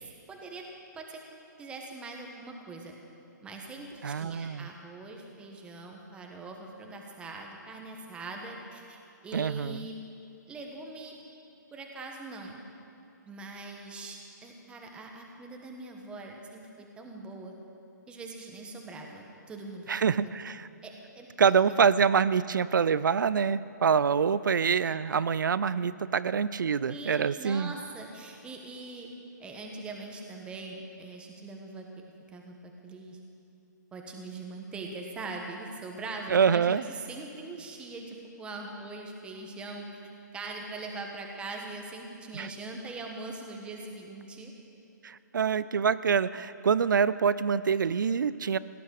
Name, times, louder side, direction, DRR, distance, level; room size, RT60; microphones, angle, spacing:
voice 1, 0.3-0.6 0.9-1.2 1.6-2.9 3.4-10.0 10.5-11.2 11.7-12.6 13.3-17.5 18.1-20.3 20.8-21.5 26.8-29.1 29.4-31.8 32.3-33.2 33.9-40.0 40.3-44.5, right 3 dB, 10° right, 1 dB, 1.4 m, -42 dB
voice 2, 4.0-4.7 9.3-9.9 19.9-20.7 21.4-27.7 36.3-36.8 42.3-42.5 45.0-48.6, right 6 dB, 85° right, 16 dB, 0.5 m, -25 dB
17.5 x 11.5 x 6.6 m, 2.8 s
hypercardioid pair, 150°, 10 cm